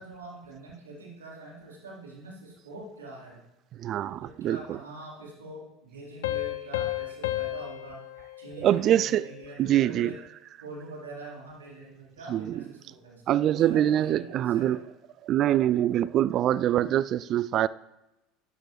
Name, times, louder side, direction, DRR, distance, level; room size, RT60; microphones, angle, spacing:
voice 1, 0.0-3.4 4.0-8.0 8.4-10.2 10.6-14.8, right 2 dB, 85° right, 3.6 m, -44 dB
voice 2, 3.8-4.8 8.6-9.3 9.6-10.1 12.3-12.6 13.3-14.8 15.2-17.7, right 12 dB, 45° right, 0.3 m, -24 dB
Piano, 6.2-9.5, left 16 dB, 70° left, 0.6 m, -33 dB
12.5 x 10.0 x 3.1 m
figure-of-eight pair, 70°, 0 cm